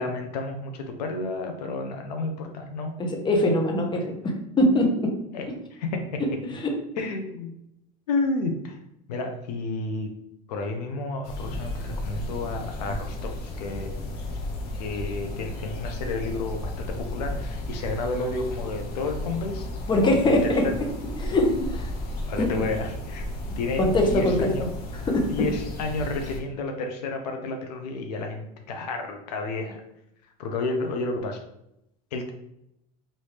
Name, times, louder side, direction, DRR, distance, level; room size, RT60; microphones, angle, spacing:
voice 1, 0.0-2.9 3.4-3.6 3.9-4.0 5.3-6.2 7.0-7.5 8.1-8.8 9.1-10.1 10.5-13.9 14.8-19.7 20.0-20.6 22.3-23.2 23.6-24.7 25.3-29.8 30.4-31.4 32.1-32.3, left 3 dB, 90° left, 4 dB, 0.6 m, -31 dB
voice 2, 3.0-4.9 6.4-6.7 19.9-20.7 21.2-21.9 22.4-22.7 23.8-24.5 25.1-25.3, left 1 dB, 25° left, 2 dB, 0.8 m, -22 dB
sound 1, 11.2-26.4, left 1 dB, 55° left, 0.8 m, -34 dB
3.2 x 2.6 x 3.2 m, 0.79 s
supercardioid pair, 100°, 20 cm